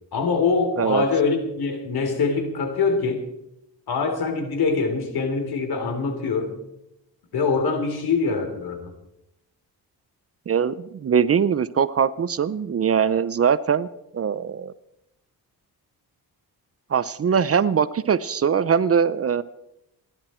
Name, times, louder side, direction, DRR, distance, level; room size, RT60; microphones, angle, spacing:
voice 1, 0.1-3.2 3.9-6.5 7.3-8.9, left 4 dB, 70° left, 5 dB, 3.5 m, -24 dB
voice 2, 10.5-13.9 14.1-14.7 16.9-19.4, right 7 dB, 40° right, 16 dB, 0.6 m, -21 dB
29.0 x 11.0 x 4.4 m, 0.86 s
cardioid pair, 120°, 38 cm